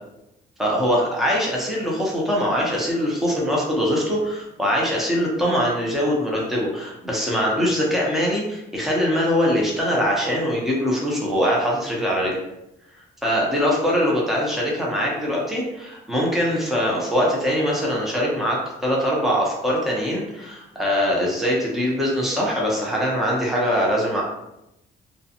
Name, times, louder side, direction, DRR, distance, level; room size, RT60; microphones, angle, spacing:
voice 1, 0.6-12.4 13.2-24.2, equal, ahead, -4 dB, 0.8 m, -22 dB
2.5 x 2.3 x 2.7 m, 0.88 s
cardioid pair, 90°, 20 cm